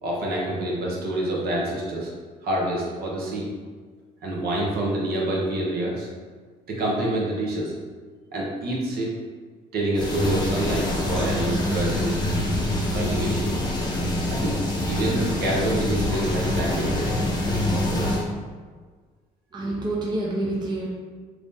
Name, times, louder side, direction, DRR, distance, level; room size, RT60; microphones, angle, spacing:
voice 1, 0.0-2.1 2.4-3.5 4.2-6.1 6.7-7.7 8.3-9.2 9.7-12.2 12.9-13.6 14.2-14.6 14.9-17.1, right 1 dB, 65° right, -3 dB, 0.9 m, -27 dB
sound 1, 9.9-18.2, left 1 dB, 25° left, 0.8 m, -25 dB
voice 2, 19.5-20.9, right 2 dB, 25° right, -4 dB, 0.6 m, -27 dB
3.0 x 2.7 x 3.5 m, 1.5 s
cardioid pair, 110°, 17 cm